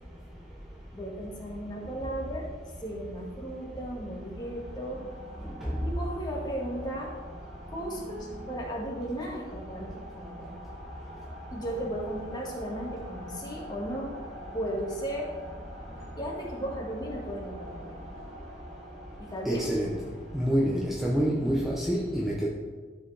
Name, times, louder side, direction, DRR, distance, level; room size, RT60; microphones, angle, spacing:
voice 1, 0.9-2.5 2.8-5.0 5.8-7.1 7.7-10.5 11.5-14.2 14.5-15.3 16.2-18.0 19.2-19.6, right 1 dB, 20° left, -3 dB, 1.8 m, -35 dB
sound 1, 4.1-21.8, equal, 75° right, 2.5 m, -47 dB
voice 2, 19.5-19.9 20.3-22.5, equal, ahead, -5 dB, 0.7 m, -27 dB
12.5 x 5.1 x 3.4 m, 1.5 s
head